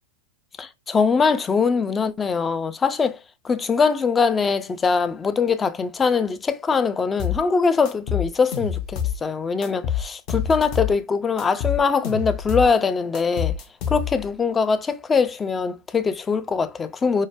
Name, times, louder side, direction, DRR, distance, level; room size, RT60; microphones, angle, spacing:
voice 1, 0.6-3.2 3.4-13.6 13.9-17.3, left 5 dB, 20° left, 0.4 m, -22 dB
sound 1, 7.2-7.4 7.9-9.2 9.6-11.0 11.4-12.7 13.1-14.3, left 9 dB, 45° left, 0.7 m, -27 dB
4.5 x 2.1 x 2.2 m
figure-of-eight pair, 90°, 0 cm